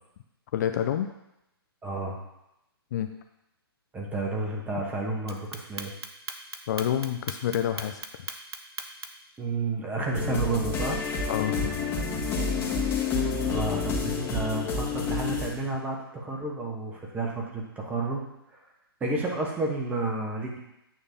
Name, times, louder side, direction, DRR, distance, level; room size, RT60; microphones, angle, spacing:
voice 1, 0.5-1.1 2.9-3.1 6.7-8.0 11.3-11.7, left 10 dB, 45° left, 7 dB, 0.5 m, -28 dB
voice 2, 1.8-2.2 3.9-5.9 9.4-11.0 13.4-18.2 18.5-18.6 19.0-20.6, right 2 dB, 10° right, -1 dB, 1.3 m, -31 dB
Clock, 5.3-9.3, right 3 dB, 80° right, 0.9 m, -37 dB
sound 1, 10.1-15.5, left 4 dB, 20° left, 1.5 m, -29 dB
9.0 x 3.3 x 5.6 m, 0.86 s
figure-of-eight pair, 130°, 13 cm